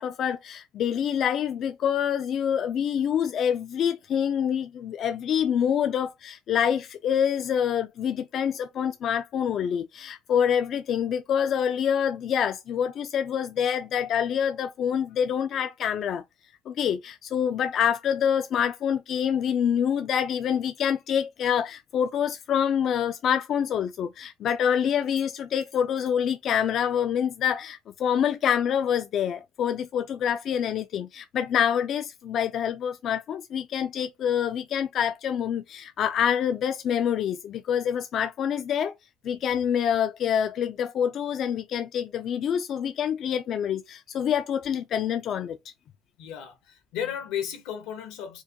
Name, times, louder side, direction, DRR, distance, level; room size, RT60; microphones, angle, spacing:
voice 1, 0.0-16.2 16.7-38.9 39.2-45.6, left 8 dB, 45° left, 0.4 m, -26 dB
voice 2, 46.2-48.4, left 9 dB, 85° left, 1.2 m, -34 dB
4.5 x 2.2 x 2.8 m
cardioid pair, 145°, 0 cm